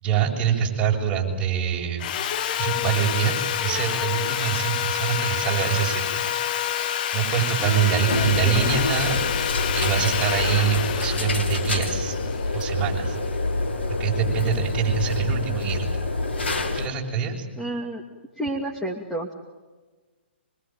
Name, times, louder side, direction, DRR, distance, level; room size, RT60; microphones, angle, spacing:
voice 1, 0.0-2.0 2.6-6.3 7.1-12.2 12.5-13.2 13.9-15.9 16.7-17.5, right 8 dB, 20° right, -1 dB, 7.4 m, -25 dB
Sawing, 2.0-13.1, left 10 dB, 45° left, 1.4 m, -28 dB
voice 2, 7.6-8.8 17.6-18.0 18.4-19.3, equal, 5° left, 1 dB, 2.5 m, -31 dB
sound 1, 8.1-16.9, left 2 dB, 70° left, 6.1 m, -26 dB
25.5 x 25.0 x 9.2 m, 1.3 s
hypercardioid pair, 135°, 6 cm